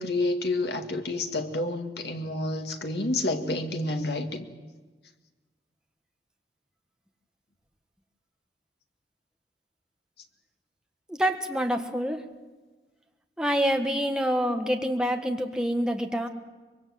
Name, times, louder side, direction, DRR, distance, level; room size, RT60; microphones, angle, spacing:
voice 1, 0.0-4.4, left 2 dB, 70° left, 5 dB, 2.1 m, -29 dB
voice 2, 11.1-12.3 13.4-16.3, equal, 5° right, 4 dB, 1.6 m, -26 dB
24.5 x 22.5 x 7.7 m, 1.3 s
head